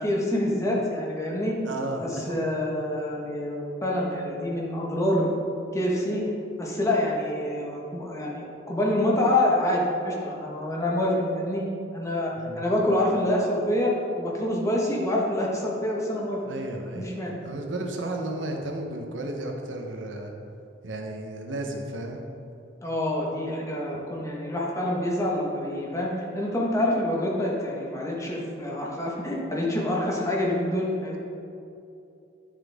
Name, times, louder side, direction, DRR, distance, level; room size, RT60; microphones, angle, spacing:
voice 1, 0.0-1.5 2.0-5.3 5.7-6.2 6.6-11.6 11.9-16.4 16.9-17.4 22.8-31.2, left 1 dB, 15° left, -3 dB, 1.4 m, -26 dB
voice 2, 1.6-2.4 12.4-12.6 16.4-17.1 17.4-20.3 20.8-22.2, right 1 dB, 75° right, 2 dB, 1.0 m, -33 dB
10.0 x 7.4 x 3.6 m, 2.7 s
head